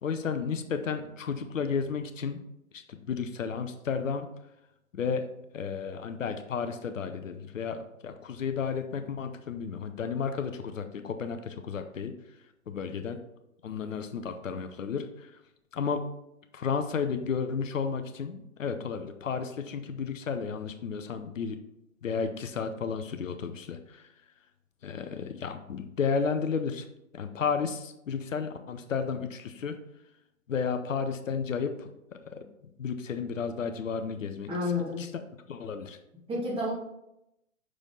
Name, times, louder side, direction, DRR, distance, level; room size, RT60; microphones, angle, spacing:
voice 1, 0.0-2.4 2.7-4.3 4.9-5.2 5.5-12.1 12.7-13.2 13.6-15.3 15.7-16.0 16.5-21.6 22.0-24.1 24.8-26.9 27.1-29.8 30.5-32.4 32.8-34.7 35.0-35.1 35.5-36.0, left 6 dB, 65° left, 7 dB, 0.8 m, -32 dB
voice 2, 34.5-35.0 36.3-36.7, left 2 dB, 15° right, -4 dB, 1.6 m, -30 dB
6.2 x 4.9 x 3.9 m, 0.85 s
figure-of-eight pair, 120°, 41 cm